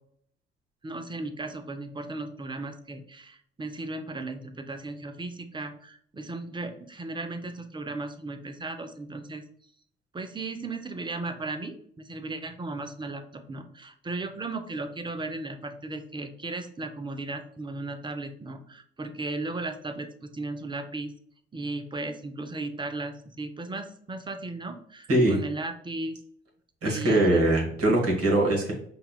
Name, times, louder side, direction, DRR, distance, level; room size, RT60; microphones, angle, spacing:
voice 1, 0.8-9.4 10.1-21.1 21.5-26.2 26.8-27.4, right 2 dB, 15° right, 8 dB, 0.4 m, -36 dB
voice 2, 26.8-28.7, right 1 dB, 50° right, -1 dB, 1.3 m, -22 dB
5.3 x 2.2 x 2.2 m, 0.64 s
hypercardioid pair, 50°, 31 cm